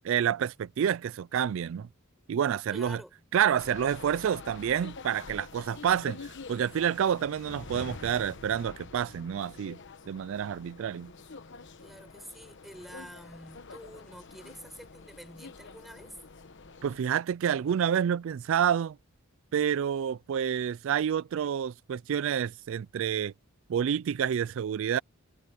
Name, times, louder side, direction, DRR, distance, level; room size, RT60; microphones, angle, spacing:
voice 1, 0.0-1.9 2.3-3.0 3.3-9.8 10.1-11.1 16.8-19.0 19.5-23.3 23.7-25.0, right 8 dB, 60° right, 0.3 m, -28 dB
voice 2, 2.7-3.3 11.8-16.2, equal, ahead, 5.5 m, -48 dB
sound 1, 3.6-17.0, left 4 dB, 55° left, 1.1 m, -47 dB
head